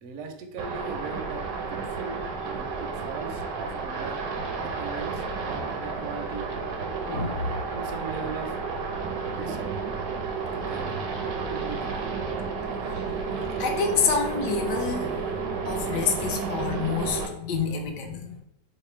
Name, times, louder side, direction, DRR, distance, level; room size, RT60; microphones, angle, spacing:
voice 1, 0.0-4.2 4.5-6.5 7.1-7.3 7.7-8.6 9.4-9.6 10.7-11.0 11.5-12.1, right 4 dB, 70° right, 4 dB, 0.8 m, -39 dB
sound 1, 0.6-17.3, right 5 dB, 85° right, 1.3 m, -31 dB
voice 2, 7.1-7.4 13.6-15.2 15.7-18.4, left 5 dB, 75° left, 3 dB, 1.2 m, -27 dB
3.2 x 2.0 x 4.2 m, 0.83 s
omnidirectional pair, 1.9 m